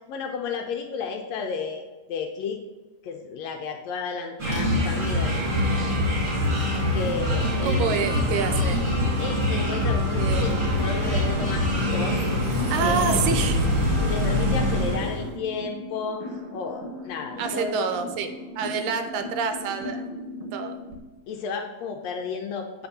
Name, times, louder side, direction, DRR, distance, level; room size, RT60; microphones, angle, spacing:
voice 1, 0.1-1.8 2.1-2.6 3.0-5.3 6.9-7.8 9.2-12.2 12.8-13.3 13.9-16.2 16.5-18.0 21.3-22.9, left 5 dB, 80° left, 3 dB, 1.6 m, -32 dB
sound 1, 4.4-15.3, left 1 dB, 40° right, 1.3 m, -24 dB
sound 2, 7.2-21.0, left 1 dB, 60° right, 1.5 m, -38 dB
voice 2, 7.6-8.8 10.2-10.7 12.7-13.7 17.4-18.3 18.6-20.0 20.5-20.8, right 6 dB, 80° right, 8 dB, 2.0 m, -27 dB
7.9 x 3.5 x 6.6 m, 1.2 s
omnidirectional pair, 3.4 m